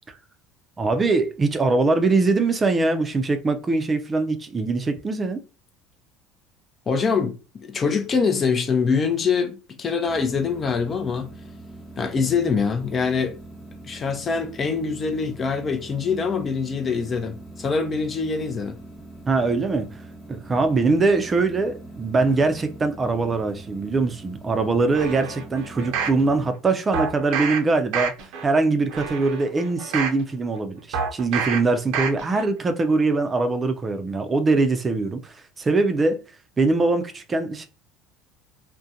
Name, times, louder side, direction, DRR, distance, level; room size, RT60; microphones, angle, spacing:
voice 1, 0.8-5.4 19.3-19.9 20.3-28.1 28.4-36.2 36.6-37.7, right 3 dB, 25° right, 0.5 m, -22 dB
voice 2, 6.9-11.3 12.0-13.4 13.8-18.8, left 5 dB, 35° left, 0.5 m, -24 dB
sound 1, 10.0-26.5, right 2 dB, 10° left, 1.2 m, -43 dB
sound 2, 24.9-26.2 26.9-27.6 27.9-28.4 28.9-30.2 30.9-31.6 31.9-32.4 32.8-32.9, right 6 dB, 70° right, 0.6 m, -28 dB
2.4 x 2.1 x 2.7 m
supercardioid pair, 95°, 0 cm